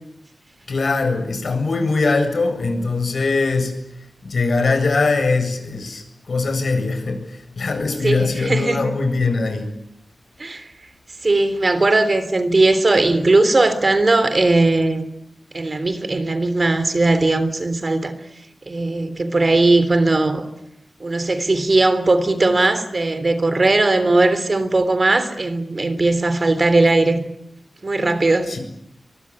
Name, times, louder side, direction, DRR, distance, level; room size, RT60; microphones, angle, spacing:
voice 1, 0.7-3.7 4.2-9.7 28.5-28.6, left 3 dB, 65° left, 7.8 m, -21 dB
voice 2, 8.0-8.9 10.4-10.7 11.2-15.1 15.5-18.1 18.7-20.5 21.0-27.2 27.8-28.6, right 2 dB, 40° right, 3.4 m, -18 dB
24.5 x 24.0 x 9.9 m
wide cardioid pair, 90°, 0 cm